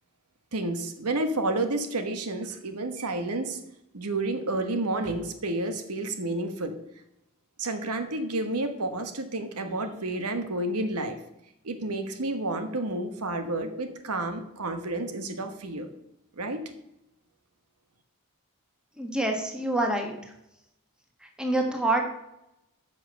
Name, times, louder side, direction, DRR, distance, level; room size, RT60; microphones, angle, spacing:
voice 1, 0.5-3.6 3.9-6.8 7.6-11.2 11.6-15.9 16.4-16.6, right 2 dB, 90° right, 8 dB, 1.3 m, -30 dB
voice 2, 19.0-20.3 21.2-22.1, right 2 dB, 5° right, 3 dB, 1.4 m, -27 dB
9.8 x 5.9 x 6.7 m, 0.83 s
head